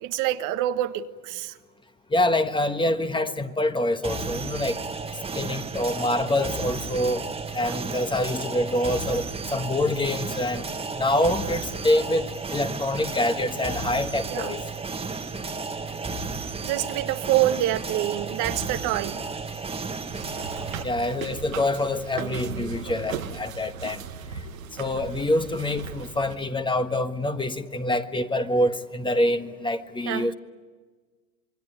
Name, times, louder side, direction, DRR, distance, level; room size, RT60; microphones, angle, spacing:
voice 1, 0.0-1.5 7.6-7.7 14.3-14.5 16.6-19.2 30.1-30.3, right 14 dB, 50° right, 1.3 m, -26 dB
voice 2, 2.1-4.8 5.3-7.2 7.5-9.2 9.5-10.6 11.0-14.6 20.8-24.0 24.8-30.3, left 1 dB, 10° left, 1.4 m, -25 dB
sound 1, 4.0-20.8, right 4 dB, 15° right, 1.7 m, -33 dB
sound 2, 20.1-26.4, right 7 dB, 85° right, 2.0 m, -37 dB
27.0 x 23.0 x 9.6 m
hypercardioid pair, 95°, 40 cm